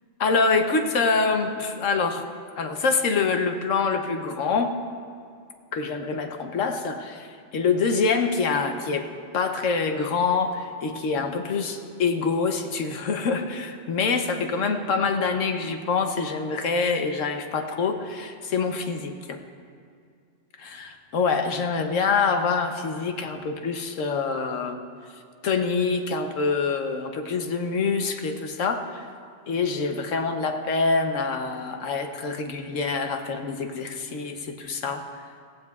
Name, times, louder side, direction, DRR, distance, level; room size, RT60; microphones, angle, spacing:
voice 1, 0.2-2.3 2.6-4.8 5.7-19.4 20.6-24.8 25.4-29.1 29.5-35.0, left 4 dB, 90° left, 5 dB, 1.3 m, -25 dB
16.5 x 15.5 x 2.4 m, 2.3 s
omnidirectional pair, 1.3 m